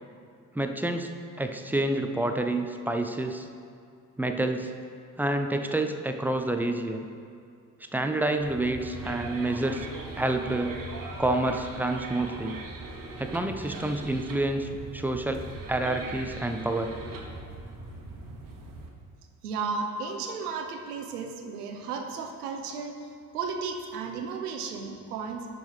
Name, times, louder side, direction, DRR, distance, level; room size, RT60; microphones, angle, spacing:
voice 1, 0.5-1.1 1.4-3.5 4.2-4.7 5.2-7.1 7.9-9.9 10.2-10.8 11.2-12.6 13.2-16.9, right 2 dB, 5° right, 5 dB, 0.4 m, -28 dB
sound 1, 8.4-18.9, right 2 dB, 45° right, 1.3 m, -40 dB
voice 2, 19.4-25.5, right 5 dB, 80° right, 3 dB, 0.9 m, -34 dB
11.0 x 3.9 x 4.7 m, 2.4 s
figure-of-eight pair, 55°, 46 cm